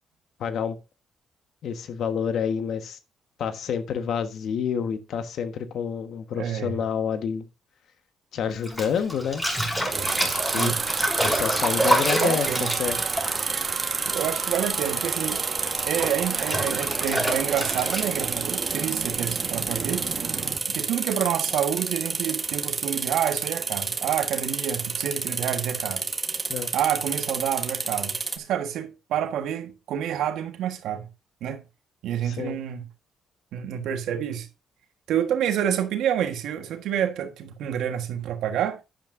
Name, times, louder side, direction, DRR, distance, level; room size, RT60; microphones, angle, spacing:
voice 1, 0.4-0.8 1.6-3.0 3.4-7.4 8.3-9.4 10.2-10.7 11.2-12.5 12.8-13.0 26.5-26.7 32.2-32.6, left 7 dB, 70° left, 1.3 m, -28 dB
voice 2, 6.4-6.8 10.6-10.8 11.8-12.7 14.1-15.4 15.8-20.1 20.7-26.1 26.7-31.1 31.4-31.6 32.0-32.9 33.5-34.5 35.1-38.8, right 9 dB, 85° right, 1.5 m, -28 dB
Bathtub (filling or washing), 8.6-14.5 14.8-18.3, equal, 15° left, 5.7 m, -28 dB
sound 1, 9.3-20.6, right 6 dB, 55° right, 1.4 m, -36 dB
sound 2, 9.9-28.4, right 4 dB, 35° right, 1.5 m, -29 dB
10.5 x 10.5 x 2.6 m
cardioid pair, 90°, 0 cm